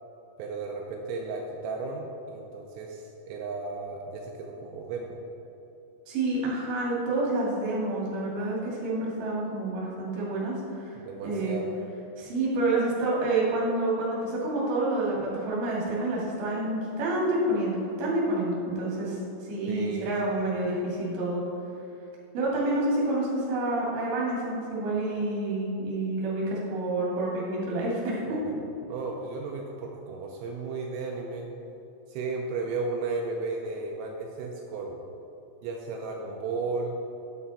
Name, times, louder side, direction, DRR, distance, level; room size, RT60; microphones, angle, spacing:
voice 1, 0.4-5.2 11.0-11.7 19.7-20.4 28.3-31.5 32.1-35.0 35.6-37.0, right 3 dB, 85° right, 0 dB, 3.4 m, -34 dB
voice 2, 6.1-11.0 11.2-11.6 12.2-21.5 22.3-28.2, right 2 dB, 55° right, -5 dB, 3.7 m, -28 dB
9.6 x 8.1 x 4.2 m, 2.9 s
omnidirectional pair, 5.9 m